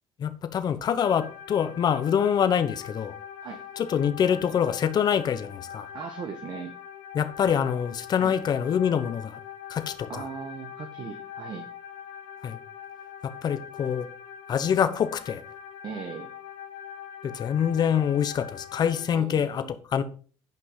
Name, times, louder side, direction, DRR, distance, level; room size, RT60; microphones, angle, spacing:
voice 1, 0.2-3.1 3.8-5.9 7.1-9.4 9.7-10.3 12.4-12.6 13.2-14.1 14.5-15.4 17.2-19.6 19.9-20.0, left 8 dB, 45° left, 1.0 m, -25 dB
sound 1, 1.0-19.1, left 9 dB, 75° left, 1.1 m, -43 dB
voice 2, 5.9-6.7 8.2-8.3 10.1-11.7 15.8-16.3 19.1-19.7, right 6 dB, 45° right, 1.3 m, -38 dB
9.4 x 5.5 x 5.6 m
cardioid pair, 125°, 10 cm